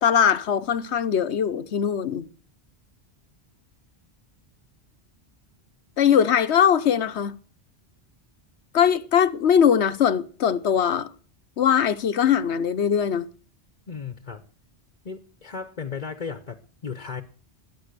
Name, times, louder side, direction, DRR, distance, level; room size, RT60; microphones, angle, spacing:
voice 1, 0.0-2.3 6.0-7.3 8.7-11.1 11.6-13.3, left 8 dB, 85° left, 1.2 m, -21 dB
voice 2, 13.9-14.4 15.0-17.2, left 6 dB, 45° left, 1.1 m, -35 dB
20.0 x 8.7 x 6.8 m
omnidirectional pair, 1.1 m